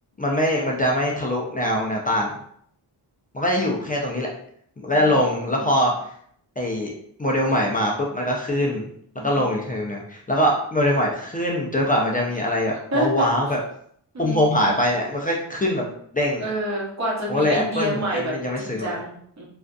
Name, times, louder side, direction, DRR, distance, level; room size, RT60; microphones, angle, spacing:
voice 1, 0.2-2.3 3.3-4.3 4.8-5.9 6.6-8.9 9.2-13.6 14.2-16.4 17.3-19.0, left 1 dB, 20° left, -2 dB, 0.4 m, -23 dB
voice 2, 4.9-5.9 9.2-9.6 12.6-13.3 14.1-14.8 16.4-19.4, equal, 35° right, -4 dB, 0.8 m, -29 dB
2.4 x 2.4 x 2.2 m, 0.65 s
wide cardioid pair, 105°, 45 cm